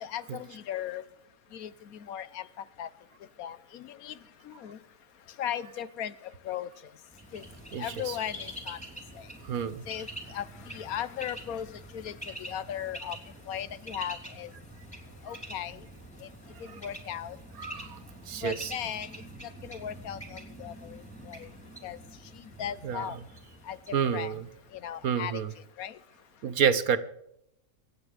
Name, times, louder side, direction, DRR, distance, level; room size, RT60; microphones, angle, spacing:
voice 1, 0.0-1.0 1.5-2.4 2.8-2.9 3.4-4.1 4.5-4.8 5.4-6.1 6.4-6.7 7.3-7.4 7.8-8.8 9.9-11.7 11.9-12.1 12.4-13.2 13.5-14.5 15.2-15.8 16.8-17.4 18.4-19.1 19.6-21.0 21.3-21.4 21.8-22.0 22.6-23.2 23.7-23.8 24.1-24.4 24.8-25.4 25.8-25.9, left 10 dB, 80° left, 15 dB, 1.3 m, -37 dB
Bird, 7.1-24.9, right 1 dB, 5° left, 3.1 m, -45 dB
voice 2, 7.7-8.2 9.4-9.9 16.7-16.8 17.6-18.0 18.3-18.7 22.8-23.1 23.9-24.5 25.0-25.5 26.4-27.0, right 7 dB, 80° right, 12 dB, 1.5 m, -29 dB
25.0 x 8.9 x 5.0 m, 0.77 s
omnidirectional pair, 1.5 m